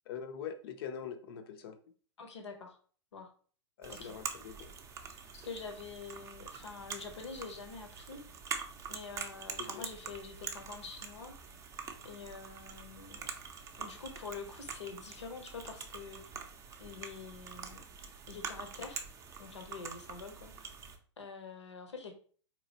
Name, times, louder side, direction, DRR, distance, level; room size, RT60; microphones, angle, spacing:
voice 1, 0.1-1.8 3.8-4.7 9.6-9.9, left 7 dB, 55° left, 9 dB, 0.6 m, -43 dB
voice 2, 2.2-2.8 3.1-3.3 3.9-4.1 5.3-8.2 8.9-11.3 12.0-13.3 13.8-16.2 16.8-17.8 18.3-19.0 19.4-20.7 21.2-22.1, left 5 dB, 75° left, 5 dB, 0.9 m, -46 dB
sound 1, 3.8-21.0, right 6 dB, 20° right, 0.5 m, -45 dB
3.8 x 3.0 x 2.8 m, 0.43 s
figure-of-eight pair, 105°, 15 cm